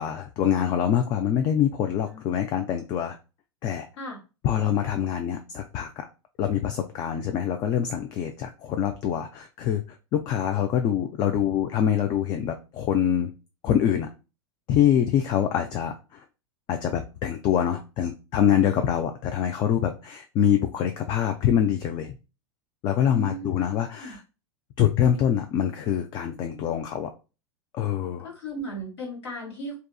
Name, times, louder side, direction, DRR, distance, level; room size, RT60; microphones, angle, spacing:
voice 1, 0.0-3.2 3.6-3.9 4.4-6.1 6.4-9.8 10.1-13.3 13.6-14.1 14.7-16.2 16.7-22.1 22.8-24.2 24.8-27.1 27.7-28.3, left 9 dB, 25° left, 6 dB, 0.3 m, -25 dB
voice 2, 23.1-23.6 24.0-24.2 28.2-29.8, equal, 65° left, 0 dB, 1.5 m, -36 dB
3.5 x 2.8 x 2.2 m, 0.30 s
figure-of-eight pair, 90°, 15 cm